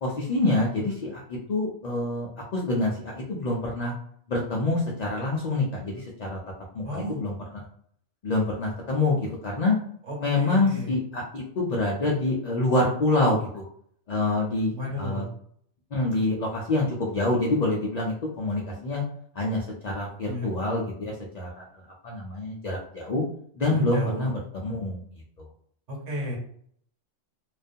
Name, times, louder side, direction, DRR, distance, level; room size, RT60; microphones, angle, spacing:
voice 1, 0.0-3.9 4.3-6.4 6.7-7.3 8.2-9.8 10.2-13.7 14.1-15.2 15.9-19.0 19.3-21.6 22.0-23.2 23.6-25.0, left 2 dB, 85° left, -2 dB, 0.3 m, -26 dB
voice 2, 6.8-7.2 10.0-10.9 14.7-15.3 20.2-20.5 23.7-24.3 25.9-26.4, equal, 90° right, -2 dB, 1.2 m, -33 dB
2.4 x 2.2 x 2.5 m, 0.64 s
omnidirectional pair, 1.3 m